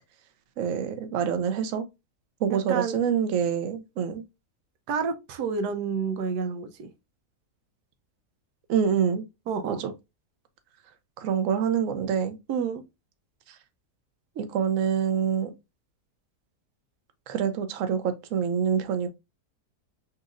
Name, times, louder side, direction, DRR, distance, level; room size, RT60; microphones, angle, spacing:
voice 1, 0.6-1.9 2.4-4.2 8.7-9.2 9.6-9.9 11.2-12.4 14.4-15.5 17.3-19.1, right 7 dB, 60° right, 1.0 m, -26 dB
voice 2, 2.5-3.0 4.9-6.9 9.5-9.8 12.5-12.8, right 6 dB, 85° right, 1.2 m, -29 dB
5.6 x 2.9 x 2.4 m
omnidirectional pair, 1.7 m